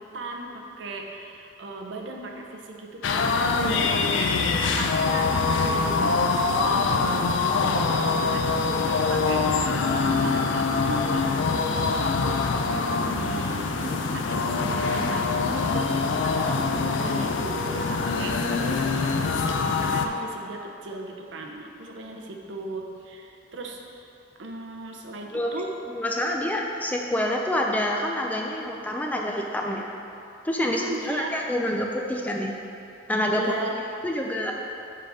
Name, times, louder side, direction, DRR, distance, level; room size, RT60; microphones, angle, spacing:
voice 1, 0.0-18.4 18.7-24.1 24.4-25.7 30.6-31.4 33.3-33.7, right 2 dB, 75° right, 1 dB, 0.7 m, -37 dB
sound 1, 3.0-20.1, left 4 dB, 80° left, 0.4 m, -24 dB
voice 2, 25.9-29.9 30.4-32.5 33.1-33.4 34.0-34.5, left 1 dB, 10° left, 0 dB, 0.4 m, -27 dB
7.6 x 3.9 x 4.8 m, 2.7 s
head